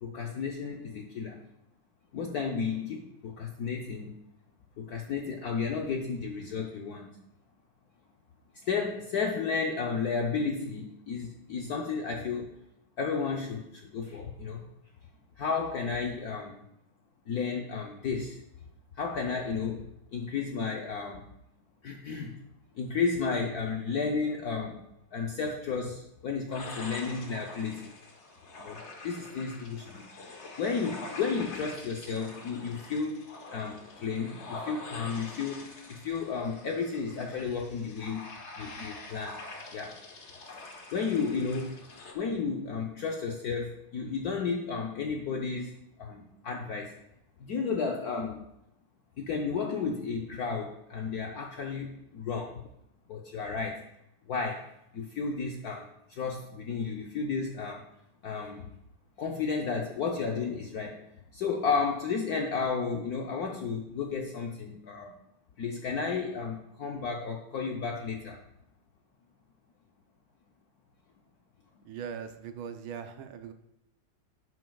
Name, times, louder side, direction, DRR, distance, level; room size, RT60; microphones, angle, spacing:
voice 1, 0.0-1.4 2.1-4.2 4.8-7.2 8.6-12.5 13.0-14.6 15.4-16.6 17.3-18.4 19.0-21.3 21.8-22.4 22.7-24.8 25.1-27.9 28.6-30.1 30.6-39.4 39.7-40.0 40.5-40.6 40.9-41.9 42.1-46.9 47.4-48.4 49.2-52.6 53.1-53.8 54.3-57.8 58.2-58.7 59.2-65.1 65.6-68.4, left 5 dB, 65° left, 1 dB, 0.9 m, -33 dB
sound 1, 26.5-42.1, left 2 dB, 40° left, 1.1 m, -45 dB
voice 2, 71.8-73.5, right 7 dB, 75° right, 8 dB, 1.4 m, -40 dB
11.0 x 8.3 x 2.3 m, 0.83 s
omnidirectional pair, 2.4 m